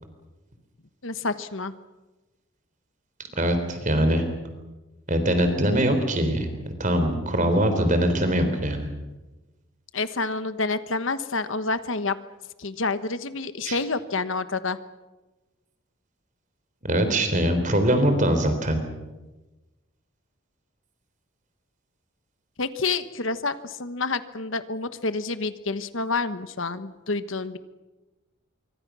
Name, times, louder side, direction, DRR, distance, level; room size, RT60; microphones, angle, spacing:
voice 1, 1.0-1.7 9.9-12.2 12.6-14.8 22.6-27.6, left 3 dB, 65° left, 12 dB, 1.2 m, -28 dB
voice 2, 3.4-4.2 5.1-6.5 6.8-8.9 13.7-13.8 16.8-18.8, right 1 dB, 35° right, 7 dB, 3.7 m, -22 dB
26.0 x 24.5 x 6.3 m, 1.1 s
head